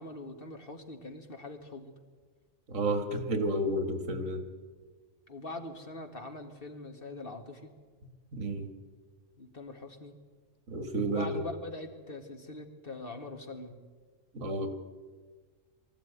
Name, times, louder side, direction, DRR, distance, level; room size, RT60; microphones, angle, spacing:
voice 1, 0.0-1.9 5.3-7.7 9.4-10.1 11.0-13.7, left 2 dB, 45° left, 5 dB, 2.1 m, -43 dB
voice 2, 2.7-4.4 8.3-8.7 10.7-11.3 14.3-14.7, right 1 dB, 90° right, 7 dB, 2.4 m, -31 dB
23.0 x 14.0 x 9.4 m, 1.4 s
omnidirectional pair, 1.3 m